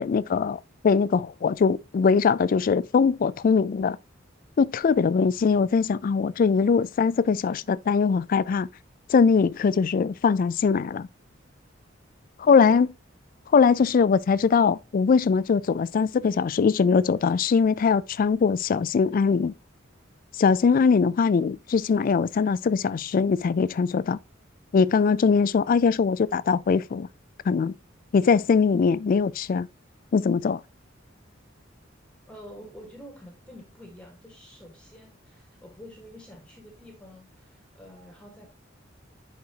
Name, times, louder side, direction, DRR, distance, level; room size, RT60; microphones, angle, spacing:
voice 1, 0.0-4.0 4.6-8.7 9.1-11.1 12.4-12.9 13.5-19.5 20.4-24.2 24.7-27.1 27.5-27.7 28.1-29.7 30.1-30.6, left 5 dB, 45° left, 0.3 m, -21 dB
voice 2, 32.3-38.5, equal, 5° left, 1.4 m, -47 dB
10.5 x 4.1 x 2.8 m
head